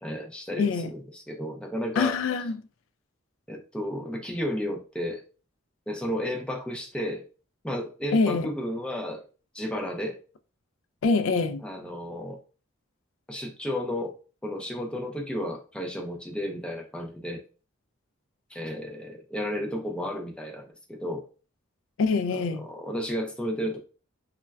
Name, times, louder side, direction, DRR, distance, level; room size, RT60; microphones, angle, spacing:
voice 1, 0.0-2.2 3.5-5.2 5.9-7.2 7.6-9.2 9.5-10.2 11.6-12.4 13.3-14.1 14.4-17.4 18.5-21.2 22.3-23.8, equal, 5° left, 0.4 m, -33 dB
voice 2, 0.6-0.9 2.0-2.6 8.1-8.5 11.0-11.6 22.0-22.6, left 4 dB, 80° left, 0.3 m, -24 dB
2.2 x 2.1 x 3.3 m
head